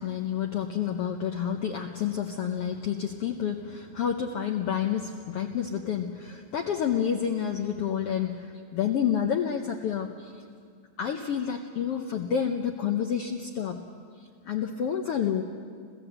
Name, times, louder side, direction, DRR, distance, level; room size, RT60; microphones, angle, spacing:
voice 1, 0.0-8.5 8.7-10.4 11.0-13.8 14.4-15.4, left 8 dB, 75° left, 4 dB, 1.4 m, -29 dB
27.0 x 16.0 x 8.0 m, 2.1 s
omnidirectional pair, 3.8 m